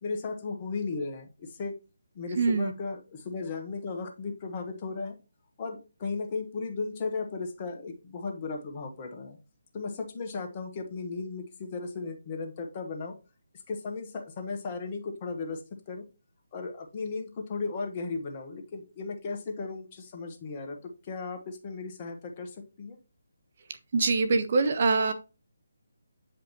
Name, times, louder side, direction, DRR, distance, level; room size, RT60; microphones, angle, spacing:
voice 1, 0.0-1.7 2.1-5.2 5.6-9.4 9.7-13.1 13.7-15.6 15.9-16.0 16.5-23.0, left 4 dB, 30° left, 3 dB, 1.4 m, -36 dB
voice 2, 2.3-2.7 23.9-25.1, right 4 dB, 45° right, 9 dB, 0.8 m, -24 dB
8.7 x 5.1 x 3.0 m, 0.31 s
figure-of-eight pair, 150°, 0 cm